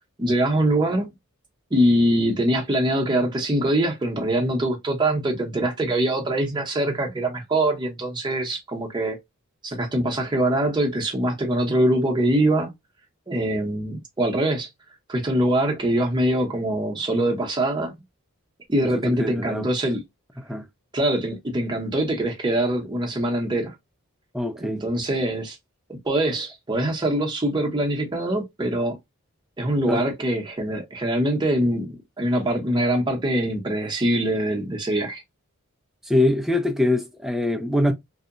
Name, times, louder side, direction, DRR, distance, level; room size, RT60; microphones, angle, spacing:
voice 1, 0.2-1.1 1.7-9.2 9.6-12.7 13.3-14.7 15.1-17.9 18.7-20.0 20.9-23.7 24.6-25.6 25.9-29.0 29.6-35.2, right 1 dB, 20° right, 0.7 m, -23 dB
voice 2, 18.8-19.7 20.5-20.7 24.3-24.8 29.9-30.0 36.0-37.9, left 1 dB, ahead, 0.3 m, -23 dB
2.7 x 2.1 x 2.4 m
head